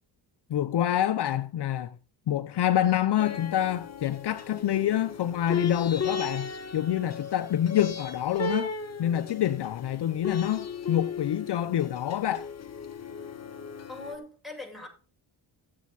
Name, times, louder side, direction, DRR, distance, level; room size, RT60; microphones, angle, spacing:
voice 1, 0.5-1.9 2.3-8.7 9.0-12.5, left 11 dB, 55° left, 0.8 m, -27 dB
sound 1, 3.2-14.1, left 5 dB, 30° left, 1.7 m, -36 dB
voice 2, 13.9-14.9, left 2 dB, ahead, 7.7 m, -41 dB
16.0 x 8.4 x 4.0 m
cardioid pair, 80°, 49 cm